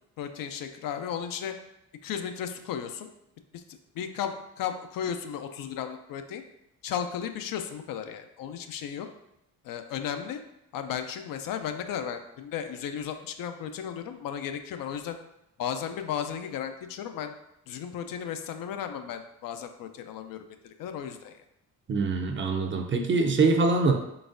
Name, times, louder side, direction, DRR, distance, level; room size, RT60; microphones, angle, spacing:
voice 1, 0.2-1.5 2.0-3.1 3.5-3.6 3.9-6.4 6.8-9.1 9.6-10.4 10.7-15.2 15.6-17.3 17.7-21.4, left 8 dB, 75° left, 7 dB, 0.5 m, -35 dB
voice 2, 21.9-23.9, right 3 dB, 35° right, 4 dB, 0.5 m, -24 dB
3.9 x 3.4 x 2.5 m, 0.83 s
cardioid pair, 85°, 34 cm